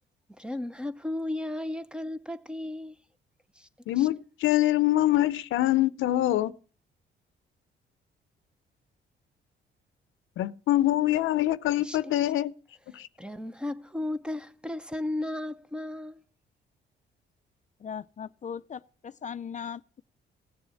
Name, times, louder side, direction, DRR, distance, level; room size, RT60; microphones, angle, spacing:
voice 1, 0.4-2.9 3.6-3.7 4.0-4.1 11.8-12.0 13.2-16.2, left 1 dB, 5° right, 0.8 m, -34 dB
voice 2, 3.9-6.5 10.4-12.5 12.9-13.1, left 14 dB, 85° left, 0.7 m, -24 dB
voice 3, 17.8-20.0, left 7 dB, 40° left, 0.5 m, -39 dB
16.5 x 7.0 x 7.0 m
cardioid pair, 90°, 20 cm